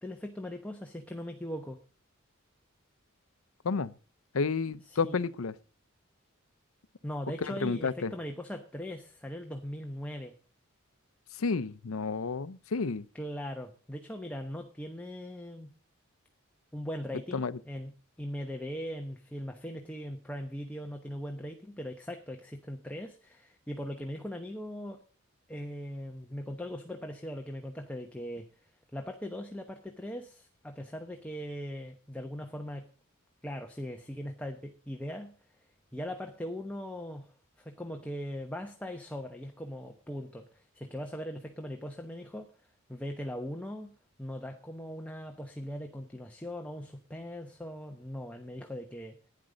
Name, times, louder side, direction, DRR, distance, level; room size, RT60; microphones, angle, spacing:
voice 1, 0.0-1.8 4.8-5.2 7.0-10.3 13.1-15.7 16.7-17.9 18.2-25.0 25.5-28.5 28.9-32.9 33.4-35.3 35.9-37.3 37.6-42.5 42.9-43.9 44.2-49.2, equal, 5° left, 1.0 m, -40 dB
voice 2, 4.3-5.5 7.5-8.1 11.4-13.0 17.3-17.5, left 4 dB, 75° left, 0.6 m, -31 dB
11.5 x 9.9 x 5.1 m
head